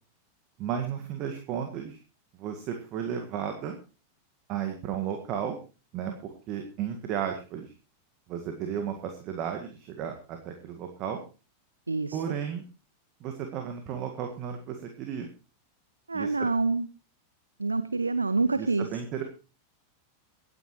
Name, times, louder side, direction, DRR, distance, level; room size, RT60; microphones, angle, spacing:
voice 1, 0.6-2.0 2.4-3.8 4.5-5.6 5.9-7.7 8.3-11.2 12.1-12.6 13.2-15.3 16.1-16.5 18.5-19.2, right 8 dB, 40° right, 4 dB, 1.8 m, -34 dB
voice 2, 11.9-12.3 16.1-16.9 17.6-18.9, right 3 dB, 80° right, 14 dB, 0.6 m, -27 dB
24.0 x 9.8 x 3.1 m, 0.33 s
figure-of-eight pair, 90°, 0 cm